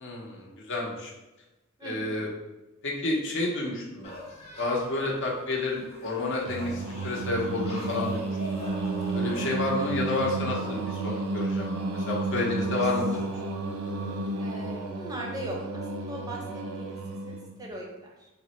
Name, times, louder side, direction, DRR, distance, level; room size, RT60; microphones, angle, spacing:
voice 1, 0.0-1.1 1.8-2.3 2.8-4.1 4.6-8.3 9.1-11.7 11.9-13.3, left 2 dB, 60° left, -1 dB, 0.7 m, -30 dB
voice 2, 1.8-2.1 9.8-9.9 14.4-18.3, right 1 dB, 15° right, -1 dB, 0.5 m, -40 dB
sound 1, 4.0-10.9, left 1 dB, 30° left, 0.6 m, -44 dB
Singing, 6.5-17.6, right 2 dB, 75° right, 0.4 m, -32 dB
3.4 x 2.0 x 4.0 m, 1.0 s
head